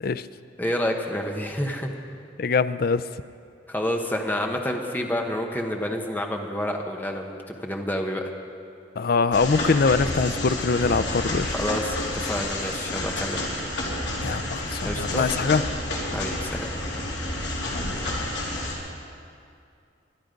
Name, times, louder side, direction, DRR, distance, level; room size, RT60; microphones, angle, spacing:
voice 1, 0.6-1.9 3.7-8.3 11.5-13.5 14.8-15.3 16.1-16.7, left 1 dB, 10° left, 2 dB, 1.1 m, -29 dB
voice 2, 2.4-3.0 9.0-11.5 14.2-15.6, left 4 dB, 50° left, 13 dB, 0.4 m, -23 dB
sound 1, 9.3-18.8, left 1 dB, 70° left, 3.0 m, -30 dB
20.5 x 11.5 x 5.2 m, 2.4 s
head